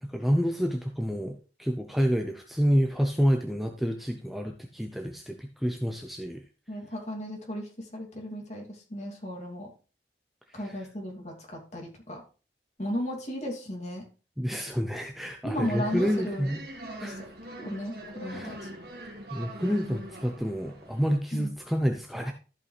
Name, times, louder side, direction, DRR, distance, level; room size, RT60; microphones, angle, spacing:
voice 1, 0.0-6.4 14.4-16.6 17.0-17.2 18.3-18.6 19.3-22.3, equal, ahead, 3 dB, 0.7 m, -28 dB
voice 2, 6.7-9.7 10.5-12.2 12.8-14.1 15.4-16.5 17.0-17.2 17.6-18.7 21.3-21.5, equal, 40° left, 0 dB, 2.7 m, -35 dB
sound 1, 15.6-21.1, right 1 dB, 65° right, 2.0 m, -42 dB
14.0 x 5.5 x 3.3 m, 0.35 s
head